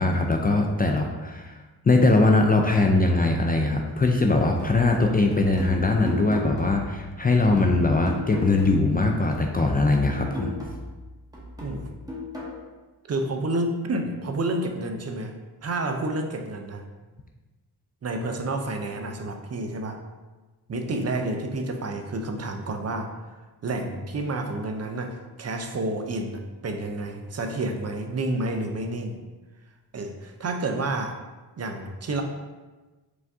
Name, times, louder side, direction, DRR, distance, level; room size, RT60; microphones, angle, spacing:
voice 1, 0.0-1.5 1.8-10.5, left 2 dB, 25° left, 2 dB, 0.3 m, -21 dB
sound 1, 4.6-9.0 9.3-12.6, left 2 dB, 10° right, 1.1 m, -36 dB
voice 2, 11.6-11.9 13.1-16.8 18.0-20.0 20.7-23.1 23.6-29.2 29.9-31.2 31.6-32.2, right 2 dB, 40° right, 4 dB, 0.5 m, -29 dB
4.9 x 2.5 x 3.5 m, 1.2 s
cardioid pair, 90°, 41 cm